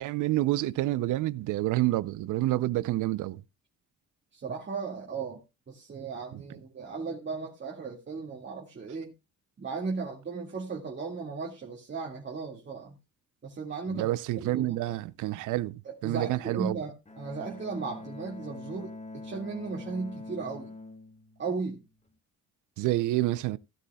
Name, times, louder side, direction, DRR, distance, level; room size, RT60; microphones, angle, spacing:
voice 1, 0.0-3.4 13.9-16.8 22.8-23.6, right 16 dB, 85° right, 0.7 m, -28 dB
voice 2, 4.3-9.1 9.6-13.0 13.4-14.1 14.4-15.0 15.8-20.7 21.4-21.9, right 4 dB, 40° right, 2.1 m, -36 dB
Bowed string instrument, 17.0-22.1, left 2 dB, 20° left, 1.8 m, -44 dB
15.5 x 10.0 x 2.3 m
cardioid pair, 90°, 30 cm